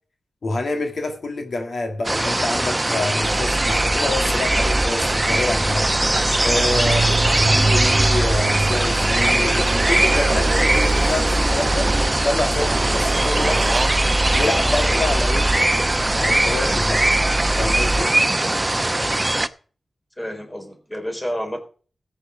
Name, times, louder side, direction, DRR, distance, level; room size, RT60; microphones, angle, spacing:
voice 1, 0.4-11.9 12.2-13.8 14.3-15.5 16.2-17.1 17.6-18.1, left 2 dB, 70° left, 2.0 m, -27 dB
sound 1, 2.0-19.5, right 1 dB, 25° right, 0.8 m, -21 dB
sound 2, 3.2-18.0, right 1 dB, 10° right, 4.9 m, -26 dB
Motorcycle, 4.3-17.0, right 3 dB, 55° right, 0.7 m, -27 dB
voice 2, 20.2-21.6, equal, 15° left, 3.7 m, -29 dB
14.0 x 8.5 x 5.0 m
cardioid pair, 50°, 0 cm